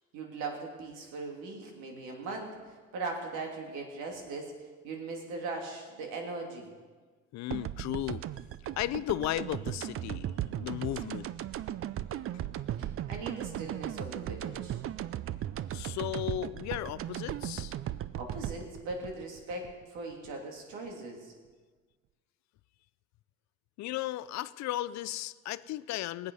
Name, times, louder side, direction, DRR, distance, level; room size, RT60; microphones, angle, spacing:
voice 1, 0.1-2.6 2.9-4.5 4.8-6.7 12.8-14.8 18.1-21.3, right 3 dB, 90° right, 1 dB, 2.9 m, -39 dB
voice 2, 7.3-8.2 8.8-10.3 10.6-11.3 15.7-17.8 23.8-26.3, left 15 dB, 65° left, 16 dB, 0.5 m, -35 dB
sound 1, 7.5-20.3, right 11 dB, 50° right, 0.5 m, -37 dB
22.0 x 8.1 x 5.5 m, 1.4 s
cardioid pair, 105°, 30 cm